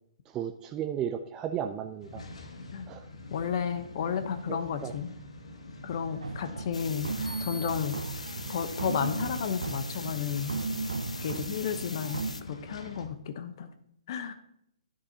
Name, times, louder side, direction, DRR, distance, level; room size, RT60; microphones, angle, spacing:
voice 1, 0.3-2.2 2.9-3.0 4.5-4.9, right 9 dB, 20° right, 6 dB, 0.5 m, -34 dB
sound 1, 2.0-13.1, left 2 dB, 70° left, 2.2 m, -46 dB
voice 2, 3.3-5.1 5.8-7.1 7.4-8.0 8.5-10.6 11.2-13.7 14.1-14.3, left 7 dB, 45° left, 10 dB, 1.0 m, -32 dB
sound 2, 6.2-12.3, right 3 dB, 70° right, 0.7 m, -36 dB
sound 3, 6.7-12.4, left 2 dB, 85° left, 0.7 m, -42 dB
11.5 x 10.5 x 2.9 m, 0.74 s
figure-of-eight pair, 130°, 3 cm